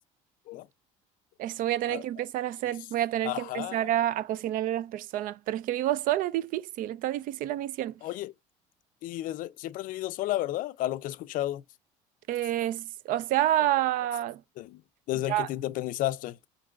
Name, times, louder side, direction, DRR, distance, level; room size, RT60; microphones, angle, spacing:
voice 1, 1.4-8.0 12.3-14.4 15.3-15.5, right 13 dB, 60° right, 0.4 m, -29 dB
voice 2, 3.2-3.9 8.0-8.3 9.0-11.6 14.6-14.8 15.1-16.4, left 15 dB, 60° left, 0.4 m, -32 dB
5.2 x 3.8 x 2.4 m
cardioid pair, 105°, 15 cm